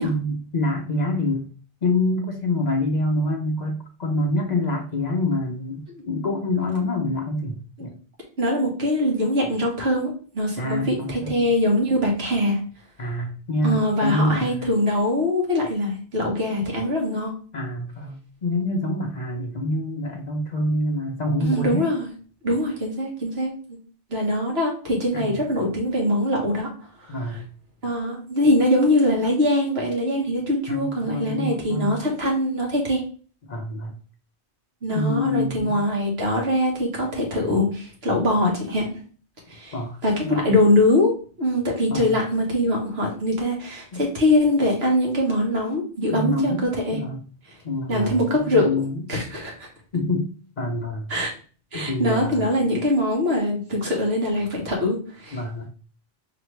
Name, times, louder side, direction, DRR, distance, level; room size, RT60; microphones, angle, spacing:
voice 1, 0.0-1.5 1.8-7.9 10.6-11.5 13.0-14.7 17.5-21.9 25.1-25.5 27.1-27.5 30.7-32.0 33.5-34.0 34.9-35.8 39.7-40.6 41.9-42.2 43.9-44.1 46.1-47.2 47.6-49.0 49.9-50.3 50.6-51.1 51.7-52.5 55.3-55.7, left 1 dB, 45° left, 2 dB, 0.7 m, -26 dB
voice 2, 8.4-12.6 13.6-17.3 21.4-22.1 22.4-23.8 24.1-26.7 27.8-33.0 34.8-38.9 39.5-39.7 40.0-41.1 41.4-47.0 47.9-48.7 49.1-49.7 51.1-51.3 51.7-55.4, left 1 dB, 70° right, -1 dB, 1.7 m, -22 dB
4.9 x 3.0 x 3.2 m, 0.41 s
omnidirectional pair, 1.1 m